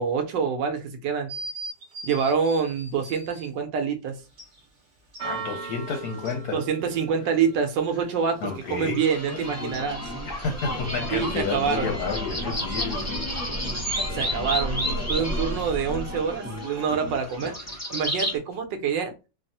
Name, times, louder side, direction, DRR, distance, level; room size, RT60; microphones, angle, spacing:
voice 1, 0.0-1.3 2.0-4.2 6.5-10.1 11.1-11.9 14.1-17.5 17.9-19.1, right 6 dB, 75° right, 1.3 m, -26 dB
sound 1, 1.3-3.5 4.4-4.5 5.1-6.4 9.7-9.8, right 2 dB, 50° right, 1.2 m, -40 dB
Church bell, 4.1-17.9, right 5 dB, 30° right, 0.8 m, -45 dB
voice 2, 5.2-6.6 8.4-9.0 10.3-13.7, left 5 dB, 70° left, 0.9 m, -31 dB
sound 2, 8.7-18.4, equal, 15° left, 0.6 m, -31 dB
3.5 x 2.0 x 2.6 m
omnidirectional pair, 2.1 m